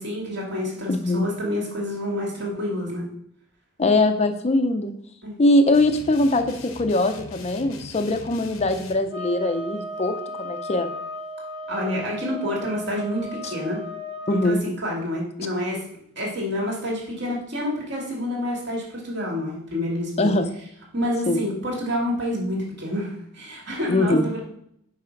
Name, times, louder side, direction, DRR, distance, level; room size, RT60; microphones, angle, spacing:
voice 1, 0.0-3.0 5.2-5.4 11.7-13.8 14.3-15.8 16.2-20.3 20.9-24.4, left 1 dB, 55° right, -2 dB, 2.3 m, -28 dB
voice 2, 0.9-1.3 3.8-4.9 5.4-10.9 13.4-13.5 14.3-14.6 20.2-20.5 21.3-21.4 23.9-24.4, left 2 dB, 30° left, 7 dB, 0.5 m, -22 dB
sound 1, 5.7-9.0, left 3 dB, 80° left, 0.8 m, -41 dB
sound 2, 9.1-14.5, equal, 25° right, 1.0 m, -35 dB
5.7 x 4.9 x 5.1 m, 0.70 s
head